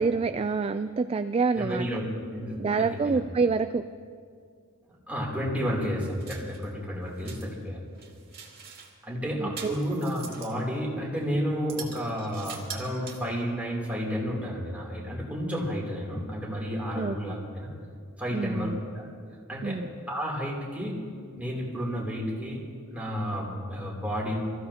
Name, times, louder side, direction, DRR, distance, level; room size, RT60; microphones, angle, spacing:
voice 1, 0.0-1.9 2.6-3.8 9.4-10.0 16.9-17.2 18.3-18.8 19.6-19.9, right 4 dB, 25° right, 9 dB, 0.3 m, -27 dB
voice 2, 1.6-3.2 5.1-7.8 9.0-17.7 18.2-19.0 19.5-21.0 21.4-22.6 22.9-24.4, equal, 5° right, -4 dB, 3.1 m, -31 dB
sound 1, 6.2-6.7 7.1-7.5 8.0-8.9 9.6-10.6 11.1-11.2 11.7-13.4, right 6 dB, 50° right, 2.1 m, -43 dB
25.0 x 15.0 x 2.9 m, 2.2 s
head